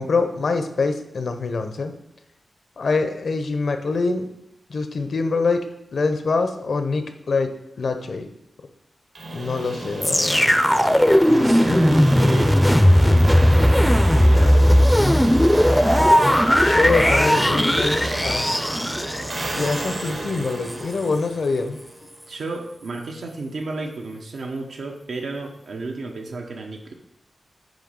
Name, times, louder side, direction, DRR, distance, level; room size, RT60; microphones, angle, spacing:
voice 1, 0.0-1.9 2.8-4.3 4.7-5.6 5.9-8.3 9.3-10.6 16.6-18.6 19.6-21.8, left 4 dB, 75° left, 8 dB, 0.7 m, -24 dB
sound 1, 9.2-22.0, right 2 dB, 65° right, 1.4 m, -31 dB
sound 2, 10.0-20.1 20.7-20.8, equal, 5° left, 0.5 m, -17 dB
voice 2, 11.2-13.6 14.1-14.7 15.0-15.5 16.8-17.7 22.3-26.9, right 3 dB, 80° right, 3 dB, 1.0 m, -33 dB
9.0 x 3.2 x 5.3 m, 0.80 s
wide cardioid pair, 75°, 0 cm